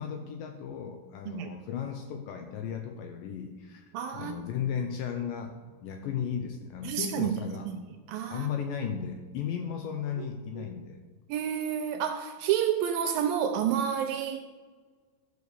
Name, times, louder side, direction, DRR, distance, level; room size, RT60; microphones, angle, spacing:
voice 1, 0.0-3.8 4.1-7.7 8.3-11.0, left 7 dB, 80° left, 5 dB, 2.1 m, -35 dB
voice 2, 3.9-4.4 6.8-7.3 7.7-7.8 8.1-8.5 10.6-10.7 11.3-14.4, right 9 dB, 85° right, 5 dB, 2.1 m, -29 dB
13.0 x 4.9 x 6.8 m, 1.5 s
omnidirectional pair, 4.6 m